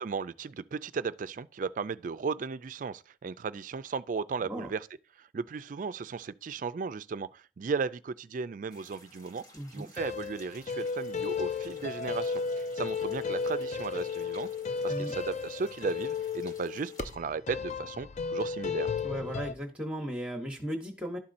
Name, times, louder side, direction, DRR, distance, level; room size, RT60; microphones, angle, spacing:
voice 1, 0.0-4.9 5.2-9.4 9.7-14.5 14.8-18.9, right 5 dB, 45° right, 0.3 m, -35 dB
sound 1, 8.7-17.2, left 1 dB, 20° left, 0.9 m, -56 dB
voice 2, 9.5-9.9 14.9-15.1 19.0-21.2, equal, 5° right, 0.8 m, -36 dB
sound 2, 10.0-19.5, left 5 dB, 40° left, 0.3 m, -34 dB
12.0 x 4.2 x 2.5 m
head